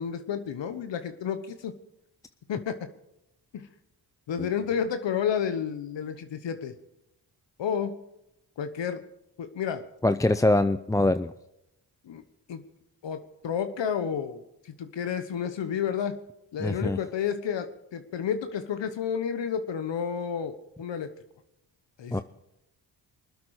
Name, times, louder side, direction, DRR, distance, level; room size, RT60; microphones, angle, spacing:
voice 1, 0.0-1.7 2.5-2.7 3.5-3.7 4.3-6.7 7.6-8.0 8.6-9.0 9.4-9.8 12.0-12.2 12.5-12.6 13.0-16.2 16.5-21.1 22.0-22.2, left 7 dB, 70° left, 9 dB, 1.2 m, -31 dB
voice 2, 10.0-11.3 16.6-17.0 22.1-22.2, left 2 dB, 10° left, 11 dB, 0.5 m, -23 dB
24.5 x 8.3 x 4.9 m, 0.85 s
cardioid pair, 60°, 46 cm